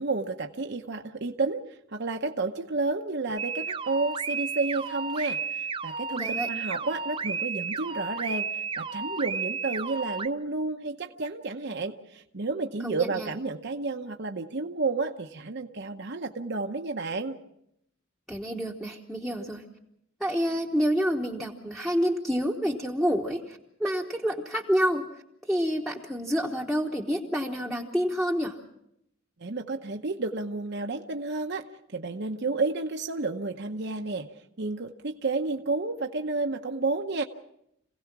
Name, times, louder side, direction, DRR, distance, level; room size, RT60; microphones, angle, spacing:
voice 1, 0.0-1.6 1.9-17.4 29.4-31.7 31.9-34.3 34.6-37.2, right 3 dB, 55° right, 4 dB, 0.9 m, -31 dB
sound 1, 3.4-10.3, right 5 dB, 25° right, 0.7 m, -32 dB
voice 2, 6.1-6.5 12.8-13.3 18.3-19.6 20.2-25.1 25.5-28.6, equal, ahead, -2 dB, 1.1 m, -28 dB
27.0 x 17.0 x 6.0 m, 0.78 s
head